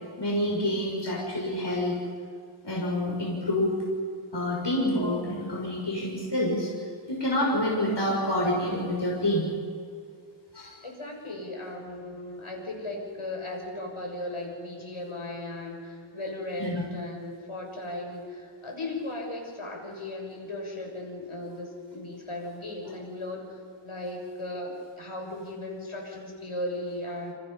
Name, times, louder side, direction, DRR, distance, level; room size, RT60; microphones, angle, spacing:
voice 1, 0.2-2.0 2.6-3.7 4.3-6.7 7.1-9.5 10.5-10.7 16.6-16.7, left 1 dB, 55° left, -3 dB, 6.4 m, -27 dB
voice 2, 10.8-23.5 23.8-27.3, left 1 dB, 80° left, 0 dB, 7.0 m, -36 dB
29.5 x 28.5 x 5.7 m, 2.2 s
wide cardioid pair, 45°, 49 cm